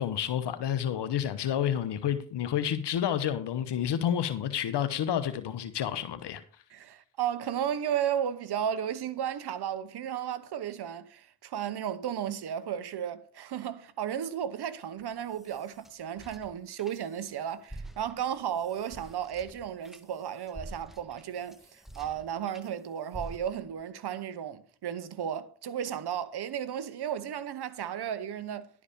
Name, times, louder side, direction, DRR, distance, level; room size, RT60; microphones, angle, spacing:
voice 1, 0.0-6.4, left 9 dB, 75° left, 1.0 m, -29 dB
voice 2, 6.7-28.7, right 9 dB, 70° right, 1.1 m, -34 dB
sound 1, 15.0-17.3 17.6-22.7 23.1-23.8, right 1 dB, ahead, 1.3 m, -48 dB
11.0 x 4.9 x 6.6 m
supercardioid pair, 45°, 41 cm